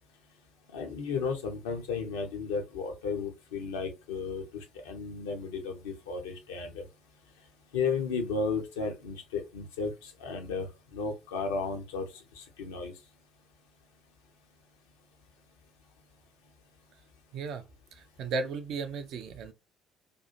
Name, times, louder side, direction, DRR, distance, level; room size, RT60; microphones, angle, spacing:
voice 1, 0.7-6.8 7.7-10.7 10.9-12.9, left 4 dB, 70° left, 0.6 m, -34 dB
voice 2, 17.3-17.6 17.9-19.5, right 4 dB, 55° right, 0.4 m, -35 dB
2.6 x 2.3 x 2.7 m
figure-of-eight pair, 50°, 0 cm